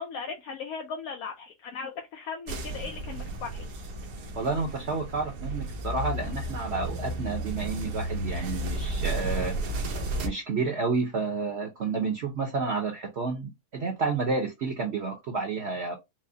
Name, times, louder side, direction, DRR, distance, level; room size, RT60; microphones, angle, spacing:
voice 1, 0.0-3.6, left 5 dB, 75° left, 1.0 m, -37 dB
sound 1, 2.5-10.3, right 1 dB, 85° right, 1.3 m, -33 dB
voice 2, 4.4-9.6 10.2-16.0, right 4 dB, 55° right, 0.8 m, -30 dB
4.7 x 2.1 x 2.7 m
omnidirectional pair, 1.6 m